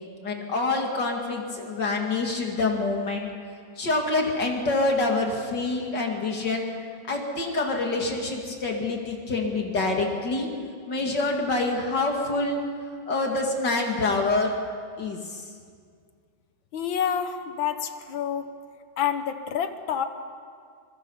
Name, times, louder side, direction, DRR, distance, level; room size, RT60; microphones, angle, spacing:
voice 1, 0.2-3.3 3.8-6.7 7.1-10.5 10.9-12.6 13.1-14.5 15.0-15.4, left 3 dB, 65° left, 1 dB, 2.9 m, -26 dB
voice 2, 16.7-18.5 19.0-20.1, left 8 dB, 85° left, 9 dB, 1.9 m, -28 dB
25.5 x 23.0 x 5.6 m, 2.1 s
omnidirectional pair, 2.1 m